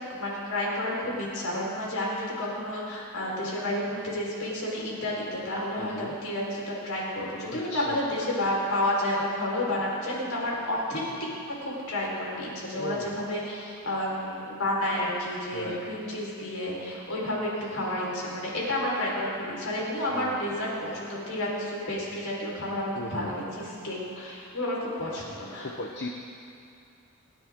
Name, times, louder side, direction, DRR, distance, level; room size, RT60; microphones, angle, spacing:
voice 1, 0.1-11.3 11.6-25.7, left 1 dB, 70° left, -4 dB, 4.5 m, -30 dB
voice 2, 5.8-6.1 7.5-8.0 12.7-13.2 15.5-15.9 20.1-20.4 23.0-23.3 24.4-24.5 25.6-26.1, left 2 dB, 50° left, 2 dB, 0.9 m, -37 dB
28.5 x 10.5 x 3.7 m, 2.5 s
head